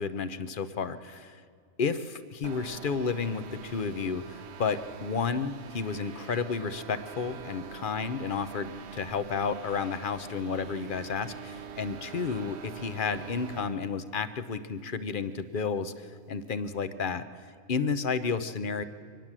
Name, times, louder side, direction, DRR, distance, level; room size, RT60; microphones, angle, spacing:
voice 1, 0.0-1.4 1.8-17.2 17.7-18.8, left 5 dB, 45° left, 13 dB, 0.8 m, -32 dB
sound 1, 2.4-13.8, right 6 dB, 55° right, 1.0 m, -44 dB
24.5 x 19.5 x 7.5 m, 2.4 s
omnidirectional pair, 1.5 m